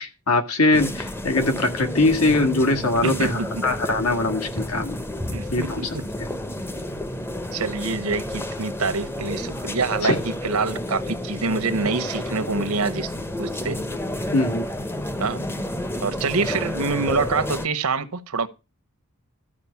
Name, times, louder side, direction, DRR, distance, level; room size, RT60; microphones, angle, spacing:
voice 1, 0.0-5.0 5.5-5.9 6.2-6.3 10.0-10.2 14.3-14.7, left 2 dB, 80° left, 1.9 m, -22 dB
sound 1, 0.7-17.7, left 1 dB, 10° left, 0.7 m, -30 dB
voice 2, 3.0-3.6 5.3-6.0 7.5-13.1 13.4-13.8 15.2-15.4 16.0-18.5, right 4 dB, 85° right, 1.0 m, -26 dB
13.5 x 5.0 x 7.1 m
head